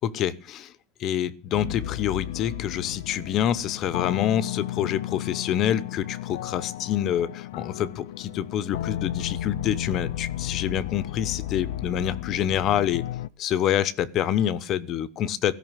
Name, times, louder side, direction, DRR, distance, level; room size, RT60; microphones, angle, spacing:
voice 1, 0.0-0.7 1.0-13.0 13.4-15.5, left 10 dB, 35° left, 0.9 m, -27 dB
sound 1, 1.5-13.3, left 13 dB, 85° left, 0.6 m, -33 dB
16.5 x 5.8 x 9.1 m
supercardioid pair, 165°, 0 cm